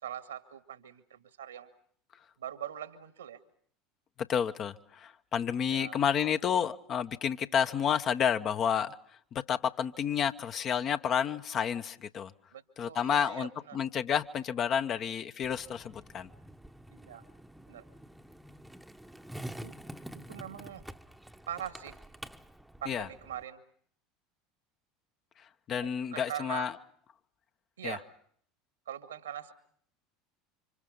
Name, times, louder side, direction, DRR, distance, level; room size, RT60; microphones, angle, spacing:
voice 1, 0.0-1.7 2.4-3.4 5.6-6.0 12.5-13.8 16.9-17.3 17.7-17.9 19.4-19.8 20.1-20.8 21.5-22.0 22.8-23.6 25.8-26.7 27.8-28.1 28.9-29.5, right 10 dB, 75° right, 1.9 m, -42 dB
voice 2, 4.2-8.9 9.3-12.3 12.8-16.3 22.9-23.1 25.7-26.7 27.8-28.0, left 8 dB, 35° left, 1.1 m, -30 dB
Skateboard, 15.4-23.4, right 1 dB, 5° right, 1.1 m, -48 dB
29.5 x 26.0 x 5.5 m
figure-of-eight pair, 70°, 0 cm